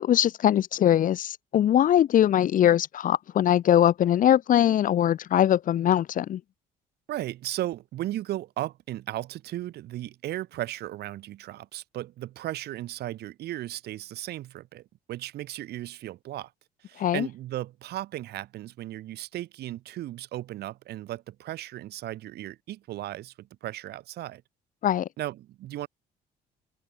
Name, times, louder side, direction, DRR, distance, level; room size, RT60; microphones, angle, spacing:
voice 1, 0.0-6.4 17.0-17.3 24.8-25.1, left 11 dB, 55° left, 1.1 m, -21 dB
voice 2, 7.1-14.8 15.1-16.5 16.9-24.4 25.2-25.9, right 14 dB, 75° right, 6.8 m, -36 dB
open air
cardioid pair, 110°, 17 cm